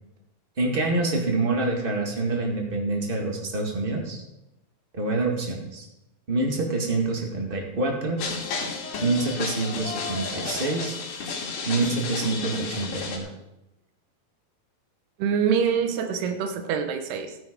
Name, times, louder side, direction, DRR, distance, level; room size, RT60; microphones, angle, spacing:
voice 1, 0.6-4.2 4.9-5.8 6.3-8.2 9.0-10.9 11.6-13.3, right 3 dB, 40° right, 1 dB, 0.7 m, -26 dB
sound 1, 8.2-13.2, left 4 dB, 80° left, 4.2 m, -32 dB
voice 2, 15.2-17.4, right 7 dB, 85° right, 7 dB, 3.2 m, -25 dB
14.0 x 9.4 x 5.2 m, 0.92 s
omnidirectional pair, 4.5 m